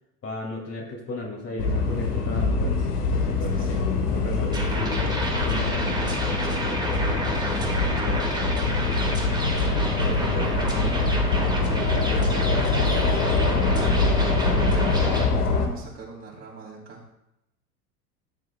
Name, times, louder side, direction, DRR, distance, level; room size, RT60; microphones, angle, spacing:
voice 1, 0.2-2.7 3.1-5.7 10.0-10.6, left 2 dB, 30° left, -1 dB, 2.3 m, -35 dB
sound 1, 1.6-15.7, left 3 dB, 80° left, 1.4 m, -24 dB
sound 2, 4.5-15.3, right 1 dB, 10° right, 1.8 m, -30 dB
voice 2, 6.3-8.5 11.5-14.2 14.7-17.0, right 2 dB, 35° right, -2 dB, 3.4 m, -41 dB
13.5 x 7.7 x 2.2 m, 0.86 s
hypercardioid pair, 80°, 46 cm